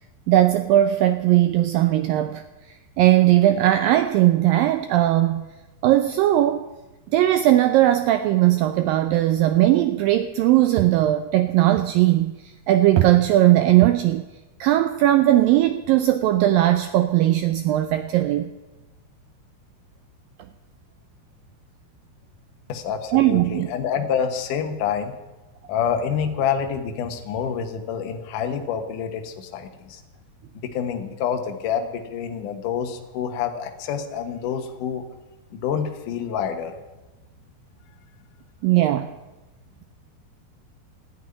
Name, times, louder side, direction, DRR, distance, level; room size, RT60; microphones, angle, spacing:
voice 1, 0.3-2.4 3.0-5.5 5.8-6.7 7.1-14.2 14.6-18.5 23.1-23.7 38.6-39.1, right 14 dB, 90° right, 9 dB, 2.0 m, -18 dB
voice 2, 22.7-25.1 25.7-30.0 30.5-35.1 35.5-36.8, left 7 dB, 65° left, 5 dB, 2.4 m, -27 dB
14.0 x 9.1 x 9.7 m, 1.1 s
omnidirectional pair, 4.8 m